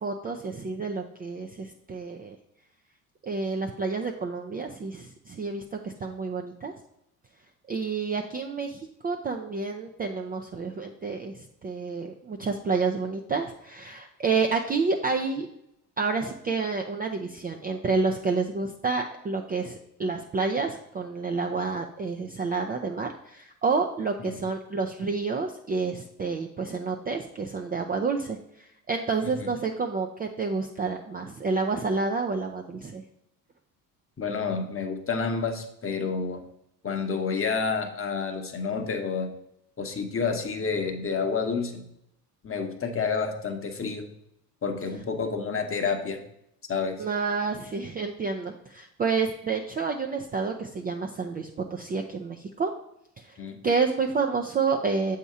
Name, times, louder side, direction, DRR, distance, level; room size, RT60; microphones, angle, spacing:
voice 1, 0.0-2.4 3.2-6.7 7.7-15.5 16.0-33.0 47.0-52.7 53.2-53.4 53.6-55.2, right 4 dB, 20° right, 2 dB, 0.4 m, -29 dB
voice 2, 34.2-36.4 36.8-39.3 39.8-41.8 42.4-44.1 44.6-46.2 46.7-47.0 53.4-53.6, left 5 dB, 25° left, 5 dB, 0.9 m, -29 dB
7.0 x 2.9 x 4.8 m, 0.78 s
hypercardioid pair, 65°, 48 cm